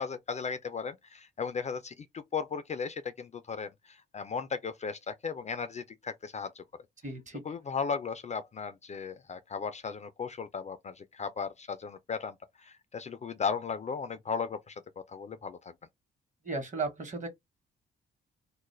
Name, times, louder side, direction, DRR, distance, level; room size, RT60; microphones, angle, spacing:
voice 1, 0.0-6.6 7.4-15.7, left 5 dB, 35° left, 0.4 m, -36 dB
voice 2, 7.0-7.4 16.4-17.3, right 3 dB, 35° right, 1.0 m, -35 dB
2.3 x 2.0 x 3.0 m
supercardioid pair, 65°, 21 cm